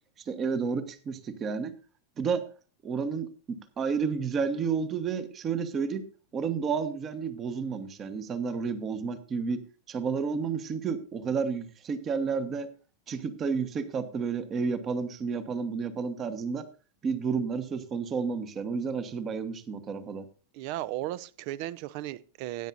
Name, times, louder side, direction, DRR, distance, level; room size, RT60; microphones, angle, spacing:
voice 1, 0.3-1.7 2.2-2.4 2.8-3.3 3.8-6.0 6.3-9.6 9.9-12.7 13.1-16.6 17.0-20.2, right 5 dB, 25° right, 12 dB, 1.1 m, -31 dB
voice 2, 20.5-22.7, right 15 dB, 45° right, 20 dB, 0.5 m, -35 dB
16.0 x 9.1 x 2.6 m, 0.36 s
figure-of-eight pair, 90°, 0 cm